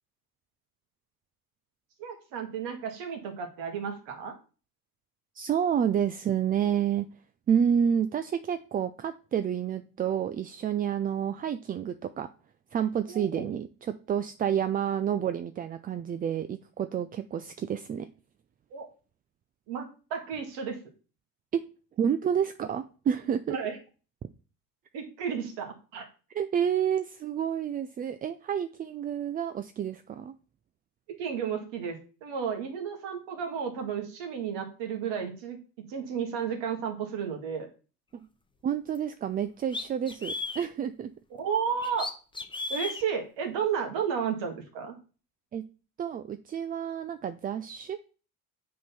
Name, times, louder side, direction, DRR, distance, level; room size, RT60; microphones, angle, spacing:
voice 1, 2.0-4.3 13.1-13.5 18.7-18.9 19.7-20.8 23.5-23.8 24.9-26.1 31.1-35.6 35.9-37.7 41.3-42.1 42.7-45.0, right 7 dB, 65° right, 4 dB, 2.0 m, -33 dB
voice 2, 5.3-7.1 7.5-12.3 12.7-18.1 21.5-21.6 22.0-23.6 26.3-30.3 38.6-41.1 45.5-45.6 46.0-48.0, right 8 dB, 20° right, 11 dB, 0.3 m, -29 dB
sound 1, 38.9-39.0 39.7-40.7 41.8-43.0, left 3 dB, 10° left, 0.9 m, -34 dB
7.4 x 3.8 x 5.8 m, 0.36 s
hypercardioid pair, 70°, 47 cm